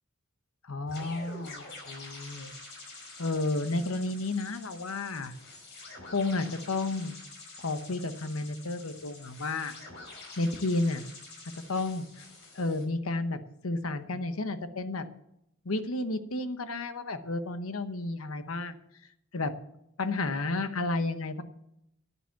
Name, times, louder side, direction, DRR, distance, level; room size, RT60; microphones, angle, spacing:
voice 1, 0.7-2.5 3.2-5.3 6.1-7.2 7.6-9.7 10.4-11.0 11.7-12.1 12.5-15.1 15.6-18.8 19.3-19.5 20.0-21.4, left 2 dB, 85° left, 10 dB, 1.0 m, -32 dB
sound 1, 0.9-12.8, left 3 dB, 60° left, 5.1 m, -47 dB
10.0 x 9.1 x 7.2 m, 0.79 s
head